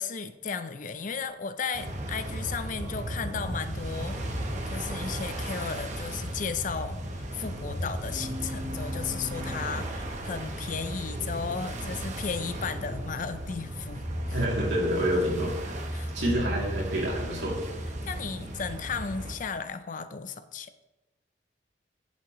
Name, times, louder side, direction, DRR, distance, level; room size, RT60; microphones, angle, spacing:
voice 1, 0.0-14.4 15.9-16.6 18.1-20.7, left 5 dB, 45° left, 11 dB, 0.5 m, -35 dB
sound 1, 1.7-19.3, right 1 dB, 40° right, 1.0 m, -36 dB
sound 2, 3.8-11.7 12.2-12.3 14.0-18.6, equal, 80° left, 3.2 m, -39 dB
voice 2, 14.3-15.8 16.1-17.6, equal, 80° right, -4 dB, 2.8 m, -28 dB
9.6 x 7.4 x 3.1 m, 1.0 s
head